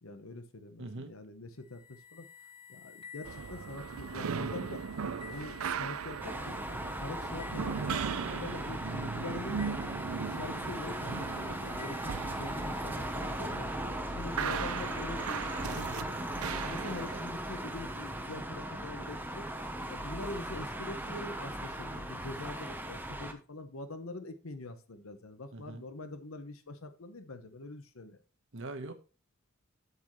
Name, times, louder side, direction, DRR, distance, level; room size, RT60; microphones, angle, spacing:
voice 1, 0.0-2.3 2.7-8.0 8.3-9.6 10.0-13.7 14.1-16.2 16.6-19.5 19.9-28.2, left 2 dB, 75° left, 1.1 m, -44 dB
voice 2, 0.8-1.1 8.7-9.0 14.5-14.6 25.5-25.8 28.5-28.9, right 2 dB, 65° right, 1.2 m, -42 dB
sound 1, 1.6-13.7, left 5 dB, 25° left, 1.5 m, -53 dB
sound 2, 3.2-17.2, right 6 dB, 90° right, 0.5 m, -38 dB
sound 3, 6.2-23.3, right 1 dB, 10° right, 1.0 m, -38 dB
8.2 x 7.6 x 3.1 m
head